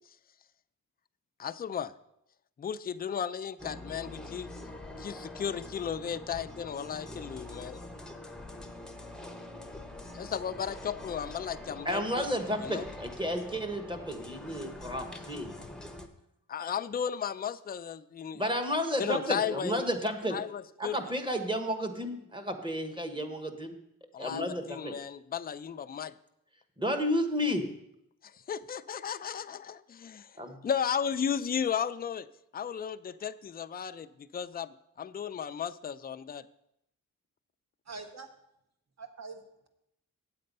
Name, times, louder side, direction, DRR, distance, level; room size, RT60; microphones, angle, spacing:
voice 1, 1.4-1.9 2.6-4.5 5.0-7.8 10.1-12.3 12.6-12.8 16.5-18.4 19.0-19.9 20.3-21.0 24.1-26.1 28.5-30.3 30.6-32.3 32.5-36.5, left 8 dB, 30° left, 11 dB, 0.3 m, -34 dB
sound 1, 3.6-16.1, left 1 dB, ahead, 0.8 m, -44 dB
voice 2, 11.8-15.5 18.3-20.4 20.8-23.8 24.2-25.0 26.8-27.7 30.4-30.6, equal, 15° right, 6 dB, 1.2 m, -32 dB
voice 3, 37.9-38.3 39.0-39.7, right 4 dB, 50° right, 6 dB, 1.3 m, -44 dB
9.1 x 7.7 x 5.3 m, 0.79 s
wide cardioid pair, 130°, 34 cm